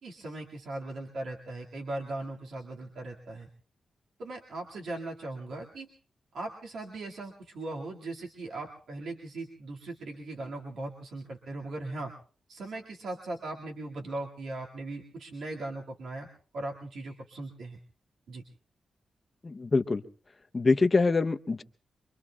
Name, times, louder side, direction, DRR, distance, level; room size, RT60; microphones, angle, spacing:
voice 1, 0.0-3.5 4.2-5.9 6.3-12.1 12.5-16.3 16.5-17.8 18.3-18.4, right 2 dB, 80° right, -2 dB, 2.1 m, -39 dB
voice 2, 19.4-20.0 20.5-21.6, left 3 dB, 30° left, 9 dB, 0.7 m, -24 dB
26.0 x 23.0 x 2.3 m, 0.40 s
cardioid pair, 100°, 0 cm